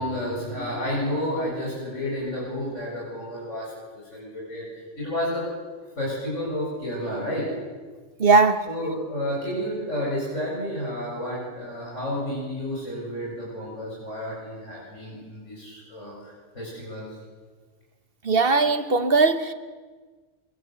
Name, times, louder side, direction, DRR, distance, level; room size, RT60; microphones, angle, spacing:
voice 1, 0.0-4.7 4.9-5.5 6.0-7.5 8.7-17.1, left 1 dB, 85° left, 8.5 m, -31 dB
voice 2, 8.2-8.7 18.2-19.5, right 4 dB, 50° right, 1.4 m, -19 dB
27.0 x 23.5 x 8.1 m
omnidirectional pair, 1.2 m